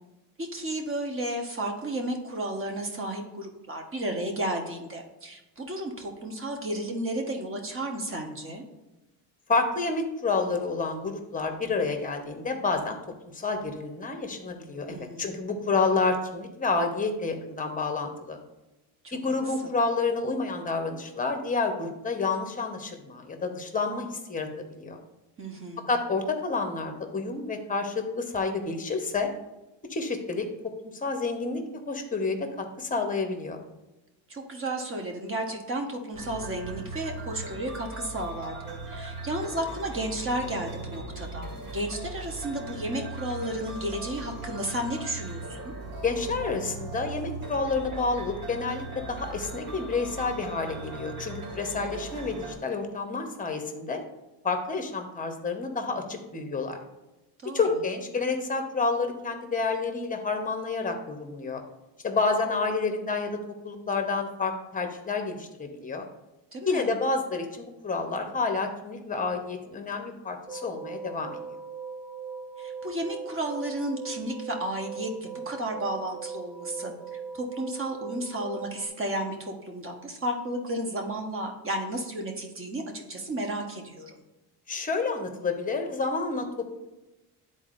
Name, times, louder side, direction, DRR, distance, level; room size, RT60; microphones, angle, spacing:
voice 1, 0.4-8.7 14.9-15.4 19.0-19.2 25.4-25.9 34.3-45.7 51.7-52.0 57.4-57.6 66.5-66.9 72.6-84.2, right 1 dB, 30° right, 3 dB, 1.1 m, -33 dB
voice 2, 9.5-13.0 13.2-18.4 19.1-24.5 24.8-25.0 25.9-29.3 29.8-30.5 30.9-33.6 46.0-54.0 54.4-56.8 57.5-61.6 62.0-66.0 66.7-71.4 84.7-86.7, left 4 dB, 20° left, 5 dB, 0.9 m, -29 dB
sound 1, 36.1-52.6, right 2 dB, 55° right, 1.8 m, -39 dB
sound 2, 70.5-78.9, right 5 dB, 5° right, 0.4 m, -40 dB
10.5 x 4.1 x 2.5 m, 1.0 s
cardioid pair, 115°, 43 cm